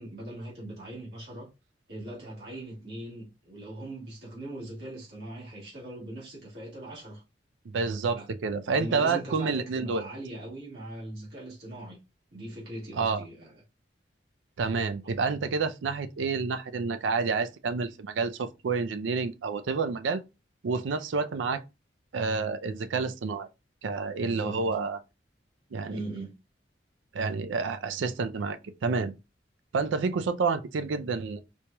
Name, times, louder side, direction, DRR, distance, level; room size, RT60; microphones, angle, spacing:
voice 1, 0.0-1.5 1.9-7.2 8.1-8.3 8.7-12.0 12.3-13.5 24.2-24.6 25.9-26.3, right 1 dB, 60° right, 1.7 m, -40 dB
voice 2, 7.7-10.0 12.9-13.2 14.6-20.2 20.6-21.6 22.1-23.5 23.8-25.0 25.7-26.0 27.1-29.1 29.7-31.4, right 4 dB, 90° right, 0.4 m, -29 dB
4.4 x 2.9 x 2.2 m
head